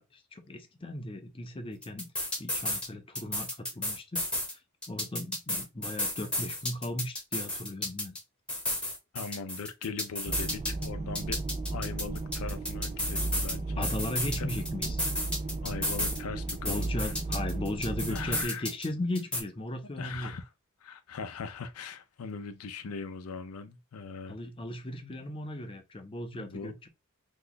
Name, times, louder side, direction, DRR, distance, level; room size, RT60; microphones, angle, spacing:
voice 1, 0.0-2.1 2.4-4.6 4.9-8.2 13.8-15.0 16.6-20.3 24.3-26.9, left 1 dB, 25° left, 0.5 m, -37 dB
sound 1, 1.8-2.9 3.2-4.5 4.8-8.2 8.5-10.9 11.2-13.5 13.8-16.2 16.5-18.9 19.2-19.4, left 1 dB, 5° left, 0.8 m, -33 dB
voice 2, 9.1-11.4 11.7-13.9 14.4-14.5 15.6-17.4 18.1-18.7 20.0-20.5 20.8-24.4 25.0-25.2 26.3-26.9, left 5 dB, 85° left, 0.5 m, -40 dB
sound 2, 10.3-18.5, right 2 dB, 30° right, 0.3 m, -35 dB
2.9 x 2.2 x 3.9 m
head